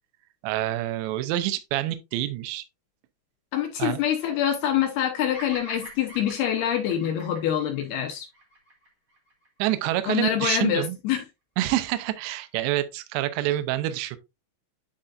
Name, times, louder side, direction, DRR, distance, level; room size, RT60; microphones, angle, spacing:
voice 1, 0.4-2.6 3.8-4.0 9.6-11.0 11.6-14.2, right 14 dB, 80° right, 2.7 m, -27 dB
voice 2, 3.5-8.3 10.1-11.2, left 10 dB, 80° left, 2.3 m, -25 dB
Bird vocalization bird call bird song, 5.3-9.6, right 1 dB, 25° right, 2.1 m, -44 dB
10.0 x 5.0 x 2.5 m
omnidirectional pair, 5.7 m